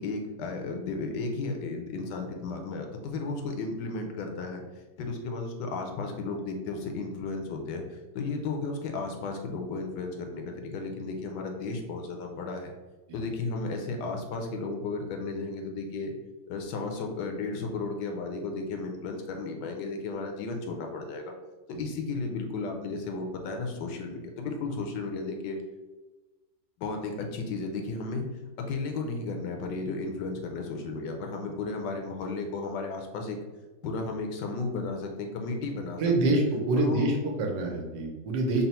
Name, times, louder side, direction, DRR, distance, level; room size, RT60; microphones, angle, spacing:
voice 1, 0.0-4.6 5.0-12.7 13.1-16.1 16.5-21.3 21.8-25.6 26.8-28.3 28.6-33.4 33.8-36.4 36.7-37.1, left 3 dB, 80° left, 3 dB, 1.2 m, -34 dB
voice 2, 36.0-38.6, right 2 dB, 85° right, 1 dB, 1.4 m, -26 dB
4.0 x 2.0 x 4.2 m, 1.2 s
omnidirectional pair, 1.9 m